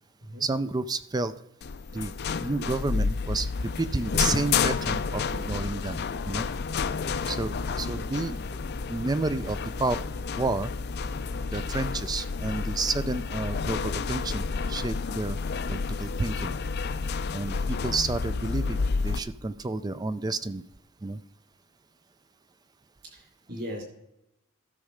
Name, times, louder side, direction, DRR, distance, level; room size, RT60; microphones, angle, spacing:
voice 1, 0.4-1.4 1.9-2.1 2.4-3.5 3.8-6.5 7.3-8.6 8.9-10.7 11.5-15.4 15.7-16.5 17.3-18.8 19.0-20.6 21.0-21.2, right 3 dB, 20° right, 14 dB, 0.4 m, -30 dB
sound 1, 1.6-19.2, left 5 dB, 50° left, 0.5 m, -30 dB
voice 2, 23.0-23.8, equal, 50° right, 0 dB, 4.3 m, -38 dB
13.0 x 6.4 x 5.0 m, 0.85 s
head